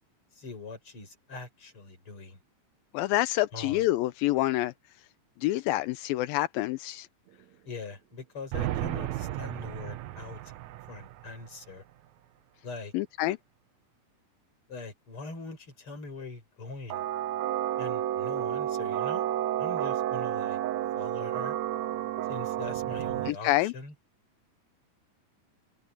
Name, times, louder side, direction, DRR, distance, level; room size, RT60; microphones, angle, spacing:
voice 1, 0.3-2.4 3.5-3.8 7.6-10.5 10.9-11.8 12.6-12.9 14.7-17.0 17.8-19.2 19.6-20.6 21.0-21.6 22.3-23.9, left 3 dB, 35° left, 6.2 m, -42 dB
voice 2, 2.9-4.7 5.4-7.1 12.9-13.4 23.3-23.7, left 17 dB, 85° left, 2.5 m, -27 dB
sound 1, 8.5-11.4 16.9-23.3, right 12 dB, 80° right, 1.6 m, -31 dB
omnidirectional pair, 4.1 m